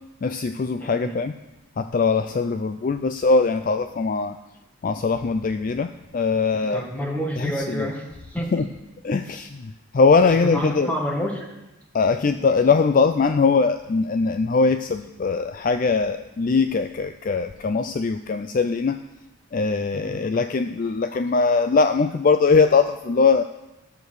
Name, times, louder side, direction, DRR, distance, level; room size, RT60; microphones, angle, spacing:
voice 1, 0.2-1.3 1.8-4.4 4.8-6.8 7.4-7.9 8.5-8.7 9.0-10.9 11.9-19.0 19.5-23.4, left 4 dB, 40° left, 9 dB, 0.3 m, -21 dB
voice 2, 0.8-1.2 6.7-8.7 9.3-9.4 10.2-11.5 19.9-20.3, equal, 5° left, 0 dB, 1.7 m, -29 dB
13.0 x 6.8 x 6.4 m, 0.98 s
head